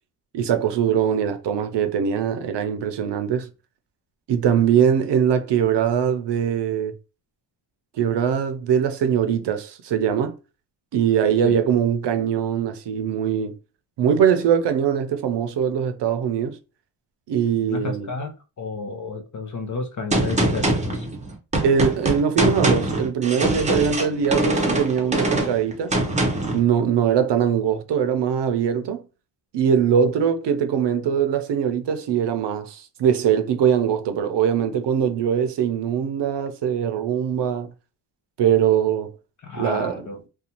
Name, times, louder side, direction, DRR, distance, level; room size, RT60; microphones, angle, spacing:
voice 1, 0.3-3.5 4.3-7.0 8.0-10.3 10.9-13.6 14.0-16.6 17.3-18.1 21.6-25.9 26.5-29.0 29.5-37.7 38.4-39.1 39.6-40.1, right 8 dB, 70° right, 0.6 m, -22 dB
voice 2, 17.7-21.1 39.4-40.2, left 4 dB, 45° left, 0.7 m, -32 dB
Gunshot gunfire, 20.1-26.6, right 2 dB, 15° right, 0.6 m, -23 dB
2.5 x 2.3 x 2.8 m
cardioid pair, 100°, 43 cm